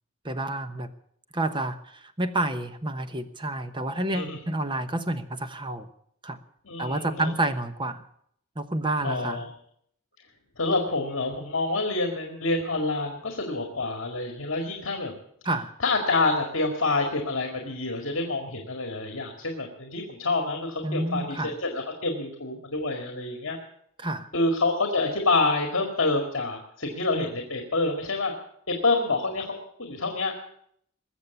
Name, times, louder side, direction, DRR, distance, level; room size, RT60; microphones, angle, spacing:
voice 1, 0.2-0.9 1.3-5.9 6.2-6.4 6.8-8.0 8.6-9.5 15.4-15.7 20.8-21.5 24.0-24.3, right 2 dB, 25° right, 9 dB, 1.0 m, -29 dB
voice 2, 6.7-7.3 9.0-9.5 10.6-15.2 15.8-23.6 24.3-28.3 28.7-30.3, left 3 dB, 65° left, 3 dB, 2.1 m, -27 dB
20.5 x 7.4 x 8.2 m, 0.69 s
head